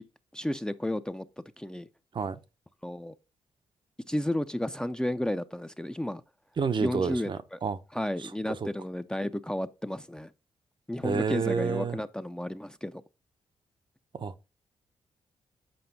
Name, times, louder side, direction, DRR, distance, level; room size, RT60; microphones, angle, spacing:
voice 1, 0.3-1.3 1.6-1.9 2.8-3.1 4.1-6.2 6.8-7.6 7.9-10.3 10.9-13.0, left 1 dB, 5° left, 0.5 m, -32 dB
voice 2, 6.6-7.8 8.2-8.6 11.0-12.0 14.2-14.3, right 5 dB, 45° right, 0.6 m, -30 dB
7.8 x 5.0 x 2.7 m
supercardioid pair, 60°, 11 cm